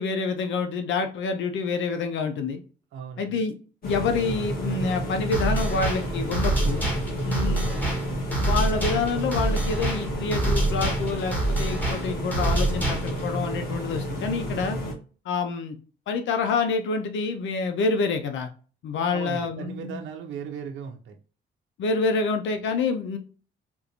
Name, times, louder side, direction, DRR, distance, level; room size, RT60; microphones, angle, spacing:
voice 1, 0.0-2.6 3.2-3.5 3.8-6.9 7.2-7.8 8.4-14.8 15.3-15.8 16.1-18.5 18.8-20.0 21.8-23.2, left 4 dB, 70° left, 6 dB, 0.6 m, -27 dB
voice 2, 2.9-3.4 7.3-7.8 19.1-21.2, right 6 dB, 75° right, 4 dB, 0.7 m, -37 dB
sound 1, 3.8-14.9, equal, 50° left, 1.4 m, -31 dB
sound 2, 5.3-13.3, right 2 dB, 10° left, 1.4 m, -27 dB
3.6 x 2.5 x 2.9 m, 0.38 s
cardioid pair, 90°, 20 cm